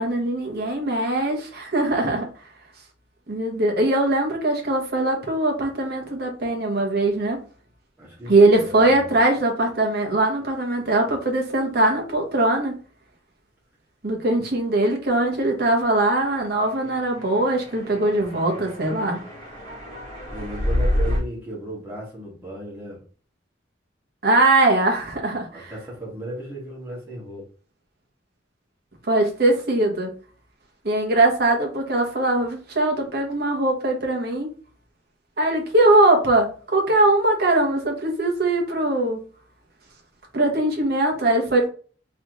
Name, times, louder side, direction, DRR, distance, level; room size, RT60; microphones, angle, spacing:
voice 1, 0.0-2.3 3.3-7.4 8.3-12.7 14.0-19.2 24.2-25.6 29.1-30.1 30.8-34.5 35.4-39.2 40.3-41.7, right 2 dB, 60° right, 1.2 m, -21 dB
voice 2, 8.0-9.0 20.3-23.0 25.5-27.5, right 1 dB, 10° right, 2.0 m, -35 dB
sound 1, 16.7-21.2, left 1 dB, 30° left, 2.2 m, -28 dB
3.7 x 3.3 x 3.1 m
head